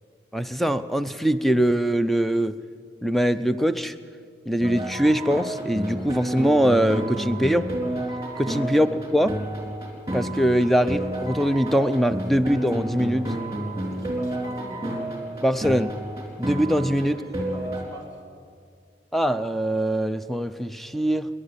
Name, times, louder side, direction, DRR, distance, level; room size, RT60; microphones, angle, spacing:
voice 1, 0.3-2.5 3.0-3.9 4.5-7.7 8.4-9.3 10.1-13.3 15.4-15.9 16.4-17.2 19.1-21.3, equal, ahead, 11 dB, 0.5 m, -22 dB
sound 1, 4.6-17.8, right 1 dB, 15° right, 4.2 m, -30 dB
voice 2, 13.8-14.9 16.9-18.2, left 1 dB, 20° left, 0 dB, 3.5 m, -43 dB
29.0 x 11.0 x 8.2 m, 2.2 s
head